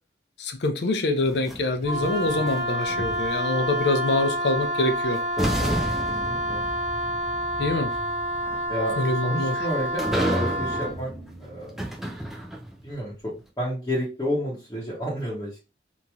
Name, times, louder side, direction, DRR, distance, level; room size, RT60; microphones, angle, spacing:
voice 1, 0.4-5.2 7.6-7.9 9.0-9.6, left 2 dB, 75° left, 0.5 m, -25 dB
sound 1, 1.2-3.6 4.8-4.9 5.4-12.9, right 1 dB, ahead, 0.4 m, -32 dB
Wind instrument woodwind instrument, 1.8-10.9, equal, 40° right, 1.1 m, -28 dB
voice 2, 5.4-6.6 8.7-8.9 9.2-11.1 11.4-11.9 12.8-15.7, equal, 20° left, 0.8 m, -31 dB
2.9 x 2.6 x 2.2 m
head